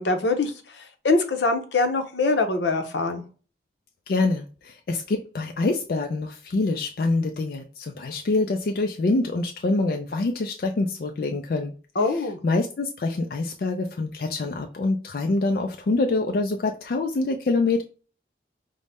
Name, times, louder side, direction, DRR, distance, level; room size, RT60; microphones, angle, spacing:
voice 1, 0.0-3.2 12.0-12.4, left 3 dB, 85° left, 6 dB, 0.7 m, -24 dB
voice 2, 4.1-11.7 12.1-17.8, left 3 dB, 55° left, 4 dB, 0.3 m, -25 dB
5.2 x 2.1 x 3.4 m, 0.37 s
head